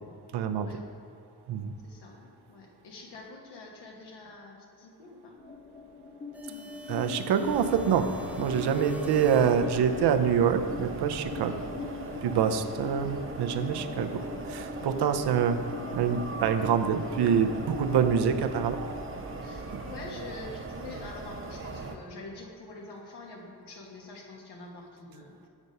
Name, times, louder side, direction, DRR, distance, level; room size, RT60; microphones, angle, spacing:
voice 1, 0.3-0.7 1.5-1.7 6.9-8.1 8.4-11.5 12.2-14.2 14.5-15.6 15.9-18.8 19.7-19.8, right 7 dB, 80° right, 9 dB, 0.6 m, -26 dB
voice 2, 1.8-5.4 8.7-8.9 11.3-11.6 12.3-12.6 19.4-25.4, left 3 dB, 90° left, 0 dB, 1.3 m, -46 dB
sound 1, 5.4-20.3, left 4 dB, 25° left, 0.9 m, -40 dB
sound 2, 6.3-10.2, left 2 dB, 5° right, 0.4 m, -47 dB
sound 3, 7.4-22.0, right 3 dB, 35° right, 0.7 m, -40 dB
6.5 x 6.1 x 5.4 m, 2.4 s
cardioid pair, 100°, 39 cm